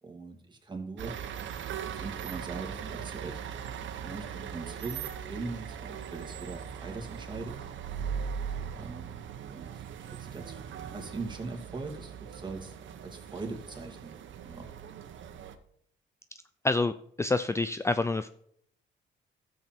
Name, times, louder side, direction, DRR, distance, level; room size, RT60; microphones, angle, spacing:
voice 1, 0.0-1.2 1.8-3.4 4.0-5.0 5.3-7.6 8.7-9.2 9.5-12.7 13.0-14.2 14.4-14.7, right 3 dB, 25° right, 3 dB, 2.6 m, -41 dB
sound 1, 1.0-15.6, right 7 dB, 70° right, 1.2 m, -40 dB
voice 2, 17.2-18.3, left 3 dB, 15° left, 12 dB, 0.5 m, -27 dB
12.5 x 8.0 x 4.5 m, 0.66 s
cardioid pair, 90°, 20 cm